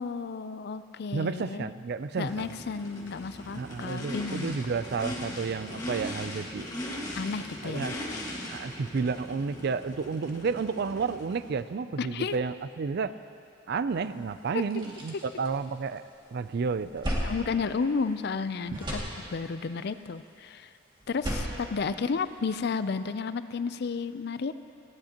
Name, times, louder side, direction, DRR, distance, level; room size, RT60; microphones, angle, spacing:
voice 1, 0.0-1.7 2.2-4.6 7.1-7.9 12.0-12.4 14.5-14.6 17.2-19.0 19.3-20.7 21.1-24.5, left 5 dB, 55° left, 12 dB, 0.4 m, -32 dB
voice 2, 1.1-2.5 3.6-6.7 7.6-7.9 8.5-13.1 13.7-16.0 16.3-17.1 18.7-18.8, right 5 dB, 50° right, 14 dB, 0.4 m, -31 dB
Race car auto racing / Idling / Accelerating revving vroom, 2.2-11.6, left 1 dB, 20° left, 1.8 m, -39 dB
sound 1, 14.0-14.1 14.5-16.2 16.5-18.4 18.6-19.7 21.0-22.6, equal, 25° right, 2.2 m, -36 dB
19.5 x 16.0 x 2.9 m, 2.5 s
head